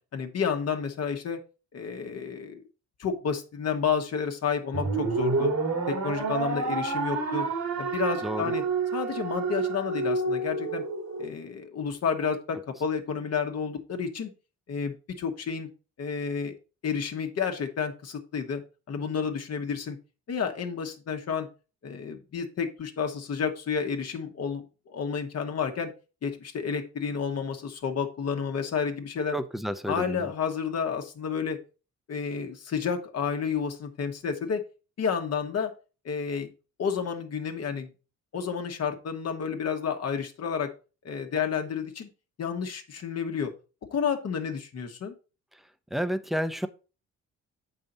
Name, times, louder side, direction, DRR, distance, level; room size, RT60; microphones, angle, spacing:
voice 1, 0.1-1.4 1.7-2.6 3.0-5.5 5.9-7.5 7.8-8.6 8.9-10.8 11.2-14.3 14.7-15.7 16.0-16.6 16.8-18.6 18.9-20.0 20.3-21.5 21.8-25.9 26.2-29.3 29.9-31.6 32.1-34.6 35.0-35.7 36.0-36.5 36.8-37.9 38.3-40.7 41.0-42.1 42.4-43.5 43.9-45.1, left 6 dB, 55° left, 4 dB, 1.4 m, -30 dB
sound 1, 4.7-11.3, right 4 dB, 70° right, 2.3 m, -29 dB
voice 2, 29.3-30.3 45.9-46.7, equal, ahead, 12 dB, 0.7 m, -30 dB
7.5 x 5.5 x 4.0 m, 0.33 s
cardioid pair, 90°, 30 cm